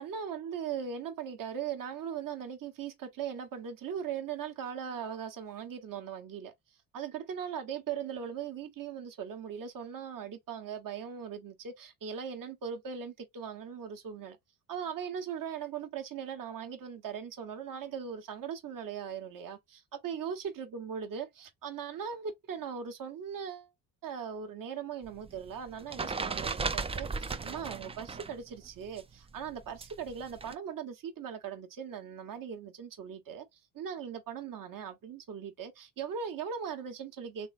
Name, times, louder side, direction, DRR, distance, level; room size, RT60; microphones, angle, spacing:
voice 1, 0.0-6.5 6.9-14.4 14.7-23.7 24.0-33.5 33.7-37.5, right 7 dB, 50° right, 1.2 m, -39 dB
sound 1, 25.0-28.4 28.6-30.5, right 4 dB, 15° right, 0.4 m, -36 dB
3.4 x 3.3 x 2.5 m
supercardioid pair, 70°, 42 cm